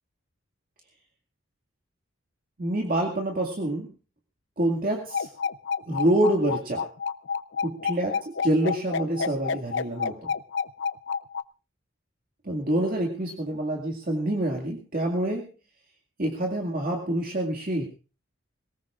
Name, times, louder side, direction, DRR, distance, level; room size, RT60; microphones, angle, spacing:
voice 1, 2.6-3.9 4.6-5.3 5.9-6.9 7.6-10.3 12.4-15.5 16.2-17.9, right 1 dB, 45° right, 0 dB, 2.1 m, -26 dB
sound 1, 5.1-11.4, left 6 dB, 65° left, 0.6 m, -29 dB
22.0 x 19.0 x 2.5 m, 0.34 s
head